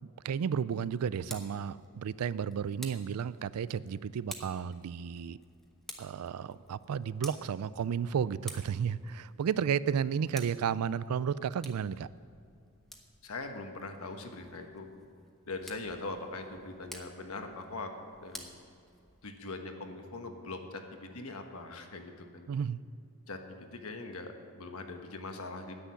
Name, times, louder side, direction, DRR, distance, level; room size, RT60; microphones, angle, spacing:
voice 1, 0.2-5.4 6.0-12.1 22.5-22.8, right 7 dB, 80° right, 18 dB, 0.4 m, -32 dB
Tick, 1.0-19.4, equal, ahead, 1.0 m, -52 dB
voice 2, 13.2-14.9 15.5-17.9 18.2-18.5 19.2-22.5 23.3-25.8, left 3 dB, 70° left, 5 dB, 1.3 m, -41 dB
10.0 x 8.2 x 9.3 m, 2.5 s
head